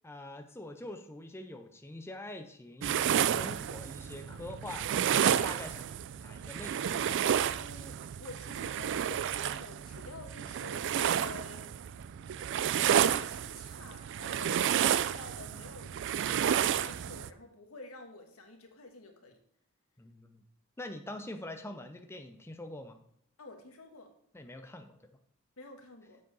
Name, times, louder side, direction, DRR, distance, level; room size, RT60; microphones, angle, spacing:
voice 1, 0.0-4.9 5.3-5.9 6.2-7.0 20.0-20.4 20.8-23.0 24.3-25.0, left 1 dB, 10° left, 6 dB, 0.5 m, -44 dB
sound 1, 2.8-17.3, right 9 dB, 60° right, 0.3 m, -31 dB
voice 2, 7.5-10.9 11.2-11.7 12.7-15.9 16.2-19.4 23.4-24.1 25.6-26.2, left 2 dB, 80° left, 4 dB, 1.5 m, -50 dB
7.4 x 7.0 x 3.9 m, 0.68 s
head